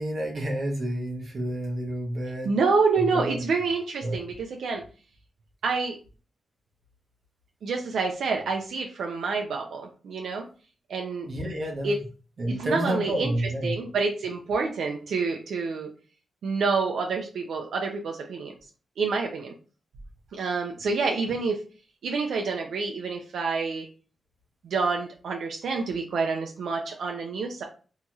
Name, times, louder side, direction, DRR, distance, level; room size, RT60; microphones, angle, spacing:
voice 1, 0.0-2.5 3.0-3.5 4.0-4.2 11.3-11.9 12.4-13.8, right 1 dB, 40° right, -1 dB, 0.8 m, -29 dB
voice 2, 2.4-4.8 5.6-6.0 7.6-10.5 10.9-11.3 11.8-12.0 12.5-13.3 13.6-15.9 16.4-18.5 19.0-19.5 20.3-21.6 22.0-23.9 24.6-27.6, right 4 dB, 75° right, 2 dB, 0.4 m, -27 dB
2.7 x 2.3 x 2.8 m, 0.37 s
wide cardioid pair, 160°, 0 cm